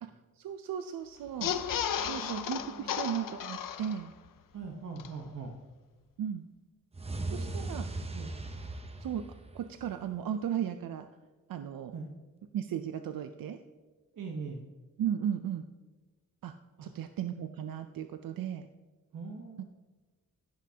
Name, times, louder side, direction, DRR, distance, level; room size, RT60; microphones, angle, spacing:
voice 1, 0.0-1.6 2.0-4.1 6.2-6.4 7.3-7.8 9.0-9.3 9.5-11.1 11.5-11.9 12.5-13.6 15.0-15.6 16.4-16.5 16.8-18.7, right 9 dB, 80° right, 8 dB, 0.5 m, -35 dB
sound 1, 1.3-4.3 4.6-4.7 5.0-5.1, left 9 dB, 70° left, 0.6 m, -34 dB
voice 2, 2.0-3.0 4.5-5.5 7.3-7.8 8.1-8.3 11.9-12.1 14.1-14.6 16.8-16.9 19.1-19.7, right 4 dB, 65° right, 0 dB, 1.0 m, -42 dB
sound 2, 6.9-10.1, right 2 dB, 20° right, 0.6 m, -38 dB
15.0 x 6.3 x 2.8 m, 1.3 s
wide cardioid pair, 145°, 34 cm